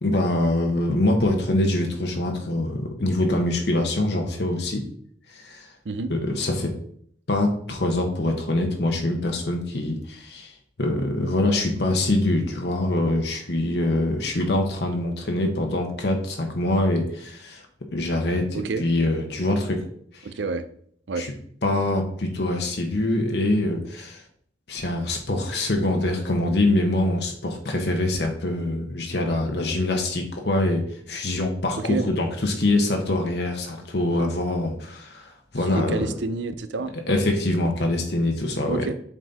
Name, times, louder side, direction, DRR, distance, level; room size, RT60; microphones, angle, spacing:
voice 1, 0.0-4.9 5.3-5.7 6.1-6.7 7.3-10.5 10.8-17.6 17.9-19.8 20.1-20.3 21.2-21.3 21.6-24.2 24.7-36.1 37.1-38.8, left 1 dB, 65° left, 2 dB, 1.1 m, -24 dB
voice 2, 20.2-20.7 21.1-21.3 31.8-32.1 35.7-36.9 38.7-38.9, right 3 dB, 80° right, 11 dB, 0.6 m, -28 dB
7.2 x 4.1 x 4.1 m, 0.64 s
head